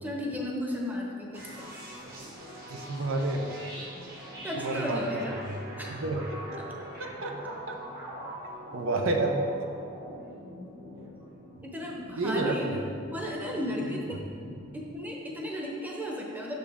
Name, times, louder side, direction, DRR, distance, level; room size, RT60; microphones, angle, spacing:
voice 1, 0.0-1.4 4.4-5.4 5.8-5.9 6.6-6.7 11.6-12.8 13.1-14.2 14.7-16.5, left 1 dB, 10° right, -2 dB, 0.9 m, -34 dB
sound 1, 1.3-14.9, right 1 dB, 50° right, 1.6 m, -43 dB
voice 2, 2.7-3.5 4.6-5.6 5.9-6.6 7.0-7.3 7.7-7.8 8.7-9.4 12.2-12.6, right 2 dB, 75° right, 2 dB, 0.7 m, -30 dB
6.7 x 6.7 x 3.6 m, 2.5 s
head